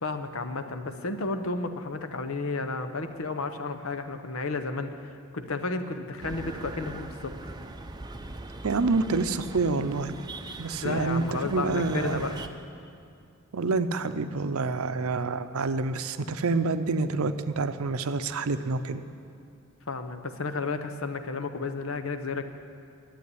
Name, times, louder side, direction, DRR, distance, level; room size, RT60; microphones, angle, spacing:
voice 1, 0.0-7.3 10.8-12.4 19.9-22.4, left 3 dB, 70° left, 8 dB, 0.9 m, -32 dB
sound 1, 6.2-12.5, right 2 dB, 20° right, 0.5 m, -41 dB
voice 2, 8.6-10.2 10.6-12.3 13.5-19.0, right 3 dB, 85° right, 11 dB, 0.6 m, -27 dB
12.5 x 8.5 x 9.6 m, 2.4 s
head